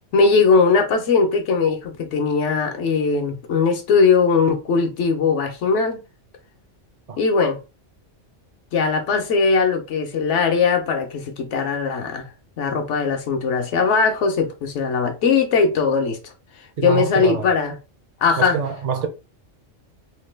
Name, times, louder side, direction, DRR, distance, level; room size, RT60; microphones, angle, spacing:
voice 1, 0.1-6.0 7.2-7.6 8.7-12.3 12.6-16.2 16.8-17.7 18.2-18.6, left 5 dB, 80° left, 1.0 m, -19 dB
voice 2, 16.8-17.5 18.4-19.1, right 7 dB, 55° right, 0.4 m, -25 dB
3.1 x 2.1 x 3.2 m
omnidirectional pair, 1.2 m